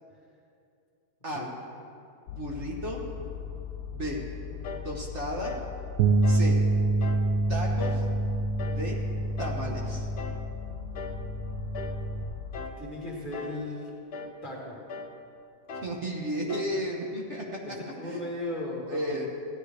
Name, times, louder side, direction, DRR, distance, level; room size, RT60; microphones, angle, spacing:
sound 1, 2.3-12.7, left 8 dB, 80° left, 1.2 m, -39 dB
voice 1, 2.4-3.0 3.9-4.2 4.8-5.5 6.2-6.6 7.5-8.0 8.7-9.0 9.4-10.1 15.8-17.4 18.0-18.3 18.9-19.3, equal, 50° right, -1 dB, 1.4 m, -33 dB
sound 2, 4.6-4.9 5.4-5.7 6.2-6.5 7.0-7.3 7.8-8.1 8.6-8.9 9.4-9.7 10.2-10.4 10.9-11.3 11.7-12.1 12.5-12.8 13.3-13.7 14.1-14.4 14.9-15.2 15.7-16.0 16.5-16.8, left 3 dB, 55° left, 0.7 m, -39 dB
Bass guitar, 6.0-12.2, right 2 dB, 80° right, 1.1 m, -27 dB
voice 2, 12.8-13.9 14.4-14.7 17.6-19.3, left 2 dB, 30° left, -3 dB, 1.9 m, -36 dB
16.0 x 10.5 x 3.4 m, 2.5 s
omnidirectional pair, 1.7 m